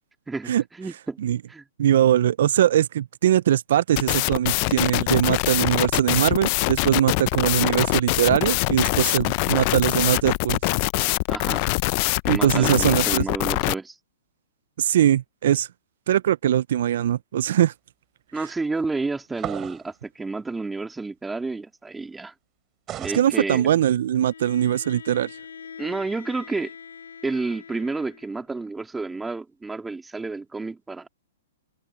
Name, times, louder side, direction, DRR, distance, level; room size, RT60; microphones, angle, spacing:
voice 1, 0.3-1.2 1.5-1.6 7.2-7.3 11.3-11.6 12.2-13.9 18.3-22.3 23.0-23.7 25.8-26.7 27.2-31.1, right 3 dB, 10° right, 2.6 m, -30 dB
voice 2, 1.8-10.6 12.3-13.2 14.8-15.7 16.1-17.7 23.1-25.4, right 11 dB, 65° right, 0.4 m, -21 dB
Weird Resonance Turntable-ish Breakbeat Thing, 4.0-13.7, left 26 dB, 40° left, 0.5 m, -23 dB
sound 1, 19.4-19.9 22.9-23.3, right 12 dB, 25° right, 4.6 m, -33 dB
Bowed string instrument, 24.1-28.4, left 7 dB, 85° left, 4.2 m, -43 dB
hypercardioid pair, 135°, 0 cm